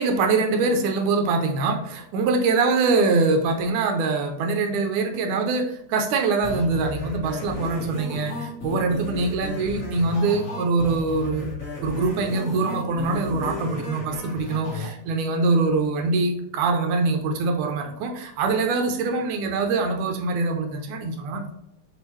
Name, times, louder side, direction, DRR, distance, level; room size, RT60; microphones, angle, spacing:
voice 1, 0.0-11.5 11.8-21.5, right 3 dB, 75° right, 4 dB, 2.0 m, -23 dB
sound 1, 6.4-14.9, left 2 dB, 35° left, 1.4 m, -34 dB
7.2 x 4.2 x 3.1 m, 0.83 s
omnidirectional pair, 3.9 m